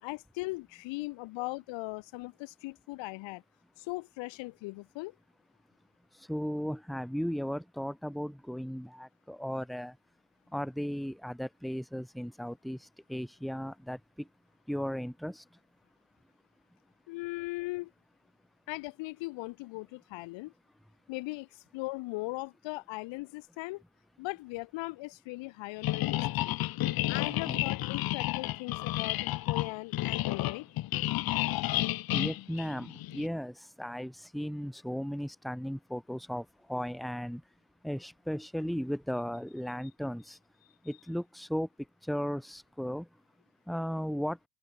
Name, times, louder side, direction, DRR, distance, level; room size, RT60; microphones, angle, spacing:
voice 1, 0.0-3.4 3.8-5.1 17.1-17.9 18.7-20.5 21.1-23.8 24.2-26.5 27.1-30.7, left 23 dB, 70° left, 2.5 m, -39 dB
voice 2, 6.3-9.9 10.5-14.3 14.7-15.4 27.2-27.7 32.1-37.4 37.8-40.4 40.8-41.7 42.0-43.1 43.7-44.4, equal, ahead, 2.9 m, -36 dB
sound 1, 25.8-33.3, left 16 dB, 50° left, 1.0 m, -31 dB
open air
supercardioid pair, 95°, 47 cm